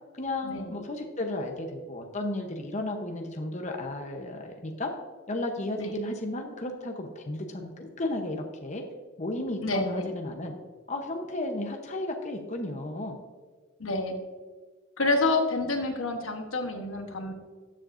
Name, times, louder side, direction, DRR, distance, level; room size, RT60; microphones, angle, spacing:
voice 1, 0.1-4.9 5.3-8.8 9.2-10.6 10.9-13.2, left 1 dB, 35° left, 3 dB, 0.9 m, -33 dB
voice 2, 9.6-10.1 13.8-14.2 15.0-17.3, left 2 dB, 90° left, 5 dB, 1.1 m, -28 dB
13.0 x 7.6 x 2.6 m, 1.4 s
head